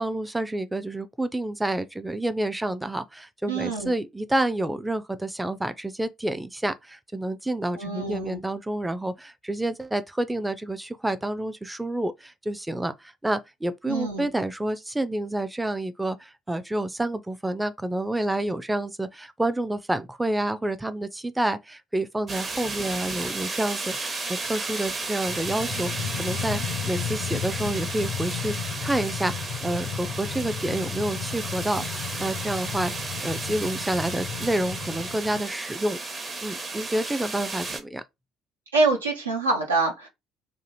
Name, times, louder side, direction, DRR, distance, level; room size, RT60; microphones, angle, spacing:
voice 1, 0.0-28.5 28.8-32.9 33.2-36.0 36.4-38.0, right 1 dB, 10° right, 0.4 m, -29 dB
voice 2, 3.5-3.9 7.8-8.4 13.9-14.3 38.7-40.1, right 3 dB, 80° right, 0.7 m, -25 dB
sound 1, 22.3-37.8, right 3 dB, 30° right, 0.9 m, -33 dB
sound 2, 25.3-35.4, left 7 dB, 60° left, 0.4 m, -34 dB
2.7 x 2.6 x 4.1 m
figure-of-eight pair, 55°, 0 cm